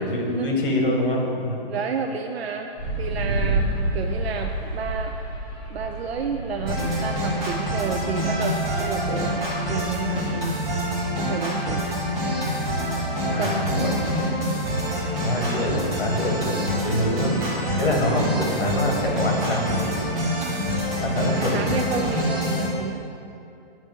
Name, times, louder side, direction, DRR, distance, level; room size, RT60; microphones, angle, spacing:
voice 1, 0.0-1.6 13.3-13.9 15.2-17.3 17.8-19.9 21.0-21.7, left 1 dB, 55° left, 0 dB, 1.5 m, -25 dB
voice 2, 1.7-2.7 3.0-5.1 5.7-9.3 9.7-10.6 11.2-11.9 13.2-13.5 13.8-14.0 14.4-14.6 21.5-23.0, right 6 dB, 85° right, 3 dB, 0.5 m, -31 dB
sound 1, 2.8-10.8, right 1 dB, 5° left, 1.4 m, -30 dB
sound 2, 6.7-22.7, equal, 25° right, 1.6 m, -26 dB
8.5 x 3.2 x 5.2 m, 2.7 s
hypercardioid pair, 170°, 30 cm